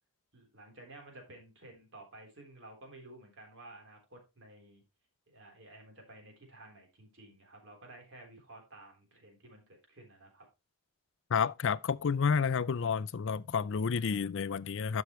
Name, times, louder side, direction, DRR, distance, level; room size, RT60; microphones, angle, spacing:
voice 1, 0.3-4.8 5.3-10.5, right 2 dB, 60° right, 3.8 m, -53 dB
voice 2, 11.3-15.0, left 6 dB, 55° left, 0.4 m, -30 dB
11.5 x 6.3 x 3.1 m
head